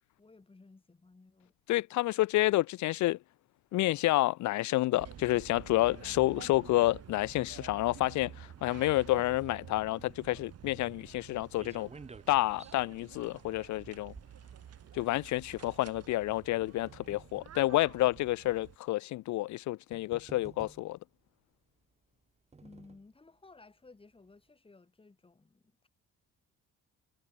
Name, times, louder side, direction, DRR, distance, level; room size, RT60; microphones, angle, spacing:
voice 1, 0.2-1.5 22.6-25.9, left 3 dB, 20° left, 7.3 m, -57 dB
voice 2, 1.7-3.2 3.7-11.9 12.3-14.1 14.9-21.0, left 17 dB, 70° left, 0.7 m, -29 dB
sound 1, 5.0-18.8, right 10 dB, 55° right, 4.5 m, -50 dB
sound 2, 9.7-15.2 16.0-17.6 18.4-18.5 19.5-19.6 19.9-21.1 22.0-23.1 23.6-23.7 23.9-24.0, right 4 dB, 20° right, 2.8 m, -54 dB
cardioid pair, 125°, 30 cm